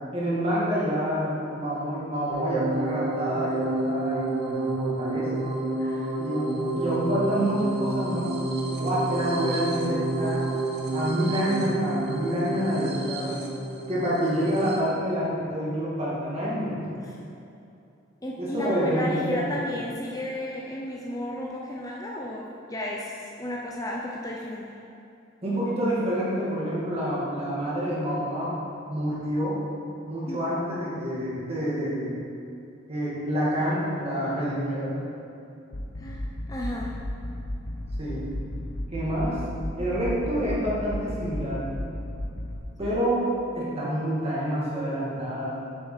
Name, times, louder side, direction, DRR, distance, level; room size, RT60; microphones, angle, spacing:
voice 1, 0.1-5.4 6.2-8.3 8.8-10.5 10.9-13.4 13.9-16.8 18.4-19.6 25.4-28.6 28.9-29.6 30.1-32.1 32.9-35.0 38.0-38.3 38.9-39.4 39.8-41.6 42.8-43.3 43.5-45.6, equal, 30° right, -7 dB, 2.1 m, -27 dB
sound 1, 2.3-14.8, right 2 dB, 55° right, 1.1 m, -29 dB
voice 2, 5.8-6.1 17.0-17.2 18.2-24.6 30.3-30.5 36.0-36.2 36.5-36.9 42.8-42.9, left 1 dB, 20° left, -3 dB, 0.6 m, -33 dB
sound 2, 35.7-42.6, left 1 dB, 65° left, 0.8 m, -34 dB
7.1 x 6.9 x 4.9 m, 2.7 s
head